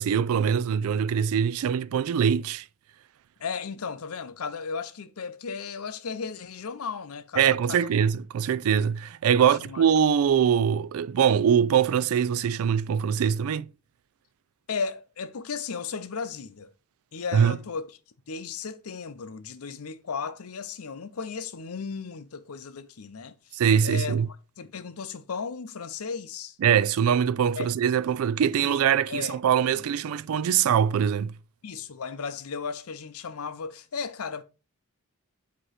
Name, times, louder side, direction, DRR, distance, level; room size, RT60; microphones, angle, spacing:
voice 1, 0.0-2.6 7.4-13.7 17.3-17.6 23.5-24.3 26.6-31.3, right 8 dB, 70° right, 0.3 m, -23 dB
voice 2, 3.4-8.0 9.4-9.8 14.7-16.7 17.1-18.0 18.3-24.2 24.6-26.6 27.6-28.0 28.6-28.8 29.1-30.0 31.6-34.4, left 5 dB, 75° left, 0.6 m, -35 dB
7.9 x 2.9 x 4.2 m
head